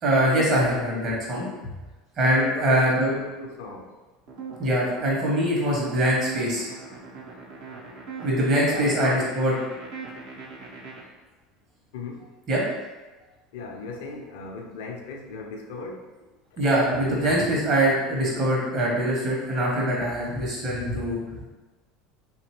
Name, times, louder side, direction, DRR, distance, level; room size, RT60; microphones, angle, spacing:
voice 1, 0.0-1.5 2.2-3.1 4.6-6.6 8.2-9.5 12.5-12.6 16.6-21.2, right 1 dB, 50° right, -4 dB, 1.4 m, -23 dB
voice 2, 2.4-3.9 8.5-9.3 11.9-12.3 13.5-16.1, left 3 dB, 70° left, 1 dB, 0.5 m, -37 dB
sound 1, 4.3-11.0, right 4 dB, 70° right, 0.8 m, -40 dB
2.9 x 2.8 x 3.0 m, 1.2 s
hypercardioid pair, 75°, 0 cm